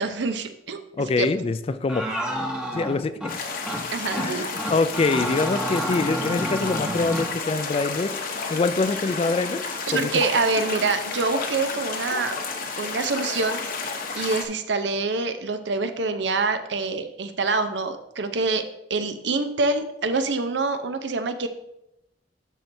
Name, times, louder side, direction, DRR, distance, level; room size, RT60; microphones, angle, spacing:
voice 1, 0.0-0.8 1.2-1.3 3.9-4.4 9.9-12.4 12.8-13.6 14.2-18.6 18.9-21.5, right 3 dB, 85° right, 9 dB, 0.7 m, -25 dB
voice 2, 1.0-2.1 2.7-3.2 4.2-9.6 9.9-10.2, left 3 dB, 35° left, 12 dB, 0.3 m, -25 dB
sound 1, 1.9-3.3 3.7-3.8 4.1-4.3 4.6-7.3, equal, 5° right, 0.8 m, -30 dB
sound 2, 3.3-14.5, left 4 dB, 50° left, 0.9 m, -31 dB
12.0 x 4.5 x 2.7 m, 0.84 s
head